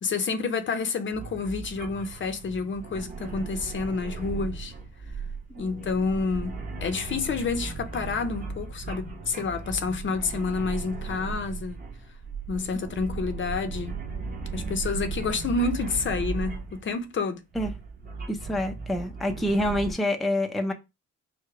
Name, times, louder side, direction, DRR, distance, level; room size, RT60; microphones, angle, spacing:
voice 1, 0.0-4.7 5.6-11.8 12.5-14.0 14.5-17.4, left 4 dB, 40° left, 0.7 m, -29 dB
sound 1, 1.1-16.9 17.5-19.9, right 4 dB, 30° right, 1.0 m, -36 dB
voice 2, 18.3-20.7, left 1 dB, ahead, 0.5 m, -27 dB
4.8 x 2.2 x 4.5 m
cardioid pair, 135°, 30 cm